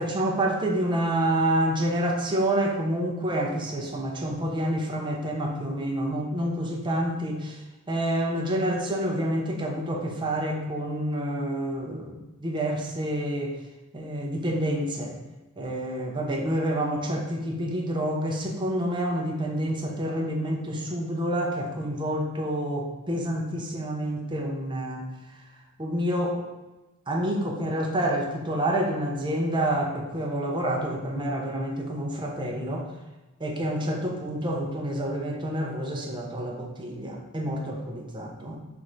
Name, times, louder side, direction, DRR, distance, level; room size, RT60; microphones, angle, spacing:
voice 1, 0.0-13.6 13.9-15.2 15.6-25.4 25.8-26.4 27.1-32.9 33.4-38.6, right 1 dB, 20° right, 0 dB, 0.6 m, -28 dB
3.4 x 3.1 x 3.9 m, 1.1 s
head